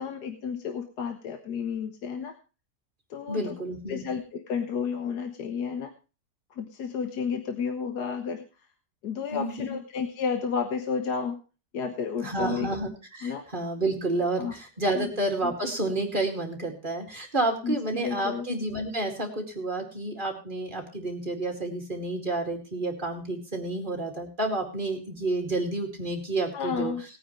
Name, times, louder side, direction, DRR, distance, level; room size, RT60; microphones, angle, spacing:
voice 1, 0.0-2.3 3.1-3.5 3.9-5.9 6.5-8.4 9.0-11.4 11.7-12.7 13.2-13.5 14.4-14.5 14.9-15.1 15.4-15.5 17.6-18.5 26.5-27.0, left 6 dB, 70° left, 6 dB, 1.7 m, -31 dB
voice 2, 3.3-4.0 9.3-9.5 12.2-26.9, right 2 dB, 30° right, 3 dB, 2.6 m, -30 dB
19.5 x 9.4 x 3.2 m, 0.32 s
omnidirectional pair, 1.8 m